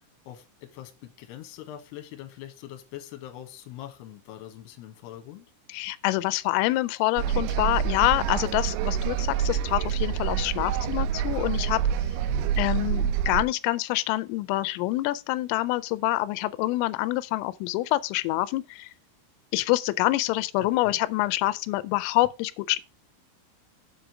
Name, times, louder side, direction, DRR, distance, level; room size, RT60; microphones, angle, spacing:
voice 1, 0.0-5.5 12.2-12.5 20.6-21.0, left 12 dB, 70° left, 2.9 m, -43 dB
voice 2, 5.7-11.8 12.6-18.9 19.5-22.8, left 18 dB, 90° left, 3.2 m, -26 dB
sound 1, 7.2-13.4, right 9 dB, 85° right, 3.0 m, -27 dB
7.5 x 5.0 x 6.0 m
omnidirectional pair, 5.7 m